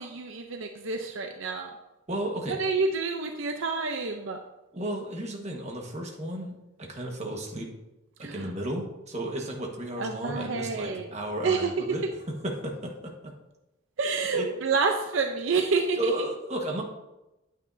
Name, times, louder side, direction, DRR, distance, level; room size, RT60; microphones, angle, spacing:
voice 1, 0.0-1.7 2.6-4.4 8.2-8.5 10.0-11.1 11.4-11.8 14.0-16.1, right 4 dB, 70° right, 5 dB, 0.6 m, -28 dB
voice 2, 2.1-2.6 4.7-7.7 8.2-12.0 12.4-13.3 14.1-14.5 16.0-16.8, right 1 dB, 35° right, 1 dB, 1.4 m, -33 dB
9.1 x 8.9 x 2.7 m, 0.97 s
head